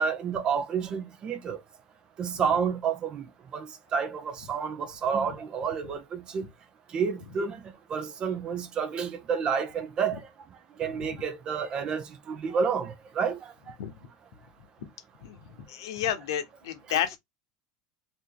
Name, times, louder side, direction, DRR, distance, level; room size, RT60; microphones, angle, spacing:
voice 1, 0.0-1.6 2.2-3.3 3.5-6.5 6.9-7.6 7.9-10.2 10.8-13.5 16.9-17.0, right 6 dB, 40° right, 0.8 m, -30 dB
voice 2, 15.7-17.2, left 10 dB, 80° left, 0.8 m, -30 dB
2.9 x 2.7 x 3.9 m
hypercardioid pair, 100°, 2 cm